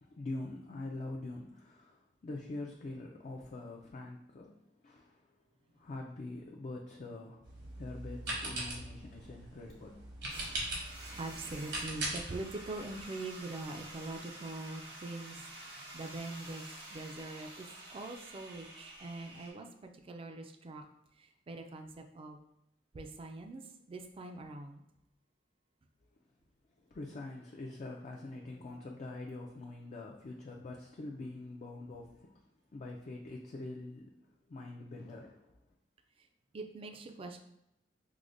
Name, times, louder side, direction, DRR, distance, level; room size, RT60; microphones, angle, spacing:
voice 1, 0.0-4.6 4.8-5.3 5.7-10.0 26.9-32.4 32.7-34.1 34.5-35.5, left 2 dB, 40° left, 0 dB, 0.3 m, -44 dB
sound 1, 7.4-13.0, right 2 dB, 70° right, 1.0 m, -41 dB
sound 2, 10.3-19.5, right 1 dB, 90° right, 1.5 m, -49 dB
voice 2, 10.9-20.8 21.2-22.4 22.9-24.8 36.5-37.4, right 2 dB, 30° right, 5 dB, 0.3 m, -43 dB
4.7 x 2.1 x 2.5 m, 0.84 s
head